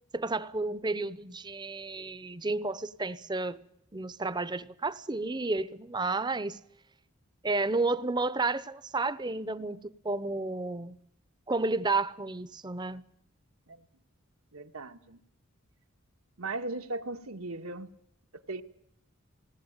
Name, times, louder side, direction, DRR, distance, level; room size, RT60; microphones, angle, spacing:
voice 1, 0.1-3.6 3.9-6.6 7.4-11.0 11.5-13.1, right 3 dB, 20° right, 0.8 m, -31 dB
voice 2, 14.5-15.2 16.4-17.9 18.3-18.6, right 2 dB, 85° right, 1.7 m, -38 dB
20.0 x 18.5 x 8.9 m
head